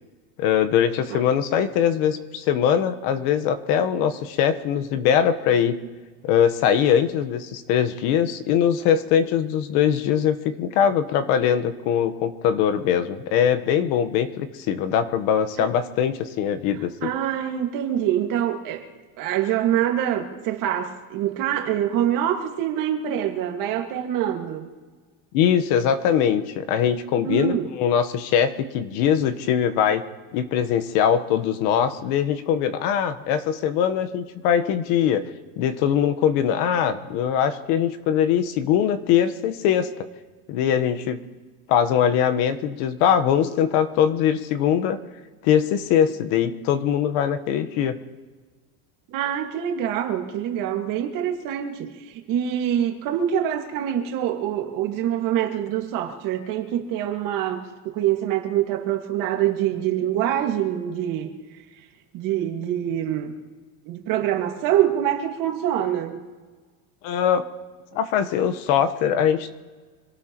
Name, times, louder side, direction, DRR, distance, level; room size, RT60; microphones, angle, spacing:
voice 1, 0.4-5.8 6.2-16.9 25.3-30.0 30.3-35.2 35.6-39.9 40.5-41.2 41.7-45.0 45.4-47.9 67.0-67.4 67.9-69.5, left 8 dB, 65° left, 9 dB, 1.2 m, -22 dB
voice 2, 16.7-18.9 19.2-24.7 27.2-27.7 49.1-61.9 62.1-63.4 63.9-66.2, right 10 dB, 50° right, 3 dB, 1.9 m, -25 dB
26.0 x 17.5 x 3.0 m, 1.4 s
cardioid pair, 155°, 41 cm